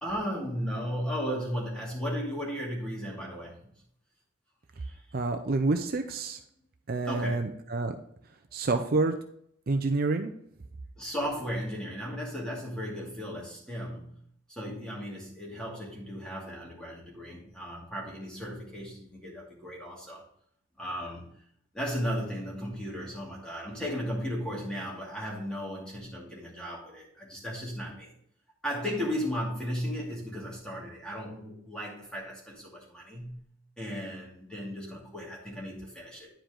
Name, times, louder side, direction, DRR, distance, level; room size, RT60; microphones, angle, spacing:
voice 1, 0.0-3.6 4.8-5.0 7.1-7.4 11.0-14.2 14.5-20.2 20.8-21.3 21.7-28.1 28.6-33.4 33.8-36.3, equal, 5° left, -3 dB, 2.5 m, -35 dB
voice 2, 5.1-6.4 6.9-7.9 8.5-9.1 9.7-10.3, right 3 dB, 50° right, 7 dB, 0.6 m, -28 dB
10.0 x 5.0 x 3.8 m, 0.67 s
head